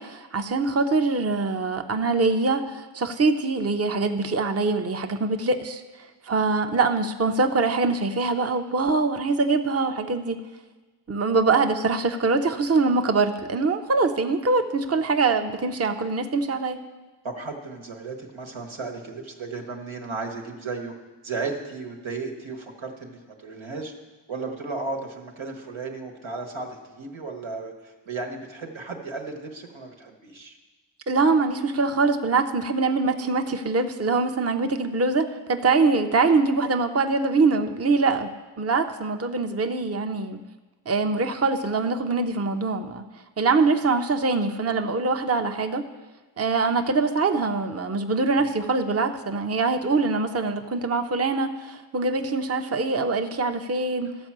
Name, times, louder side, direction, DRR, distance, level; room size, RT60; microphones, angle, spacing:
voice 1, 0.0-5.8 6.2-10.4 11.1-16.8 31.1-38.3 38.6-40.4 40.9-43.0 43.4-45.8 46.4-54.1, right 3 dB, 30° right, 7 dB, 0.6 m, -23 dB
voice 2, 17.2-20.9 21.2-23.9 24.3-30.6 48.3-48.5, right 3 dB, 90° right, 2 dB, 1.3 m, -34 dB
13.0 x 4.5 x 7.3 m, 1.2 s
wide cardioid pair, 55°, 46 cm